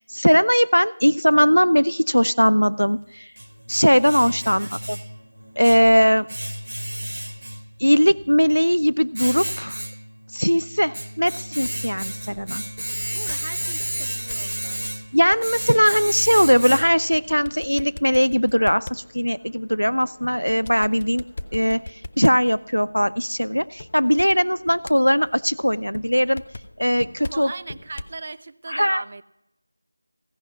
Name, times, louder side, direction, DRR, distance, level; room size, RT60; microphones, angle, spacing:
voice 1, 0.0-3.3 3.7-5.0 5.6-6.3 7.8-9.8 10.3-12.6 15.1-21.2 21.5-26.4 26.8-27.5 28.7-29.0, equal, 90° left, 17 dB, 0.3 m, -19 dB
Domestic sounds home sounds, 2.8-17.2, right 1 dB, 70° right, 0.8 m, -33 dB
sound 1, 11.3-28.2, left 2 dB, 35° left, 0.5 m, -43 dB
voice 2, 13.1-14.9 27.2-29.2, right 3 dB, 30° right, 15 dB, 0.3 m, -38 dB
16.0 x 5.8 x 5.5 m, 0.88 s
figure-of-eight pair, 170°, 0 cm